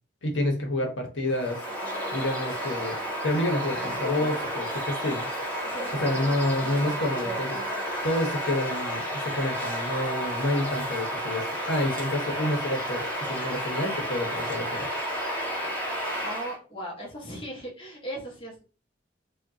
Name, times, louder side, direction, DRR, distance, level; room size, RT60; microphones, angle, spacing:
voice 1, 0.2-1.6 2.1-3.0 3.2-5.3 6.0-14.9, left 1 dB, 75° left, 2 dB, 1.1 m, -29 dB
Bird vocalization bird call bird song, 1.3-16.6, equal, 10° left, 1.5 m, -31 dB
voice 2, 5.7-6.0 16.2-18.6, right 1 dB, 25° left, -4 dB, 1.4 m, -37 dB
5.0 x 2.5 x 2.7 m, 0.34 s
head